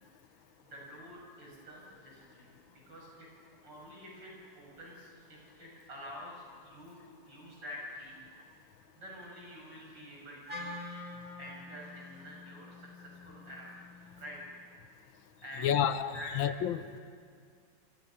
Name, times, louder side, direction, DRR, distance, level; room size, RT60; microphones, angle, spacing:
voice 1, 0.3-3.3 3.6-8.2 8.7-10.8 11.4-13.8 14.2-14.6 15.4-15.8 16.1-16.3, left 1 dB, 70° right, -3 dB, 7.7 m, -48 dB
Wind instrument woodwind instrument, 10.5-14.7, left 2 dB, 25° right, 3.4 m, -47 dB
voice 2, 15.6-17.0, left 9 dB, 85° left, 12 dB, 1.7 m, -30 dB
28.0 x 25.5 x 5.9 m, 2.2 s
omnidirectional pair, 2.1 m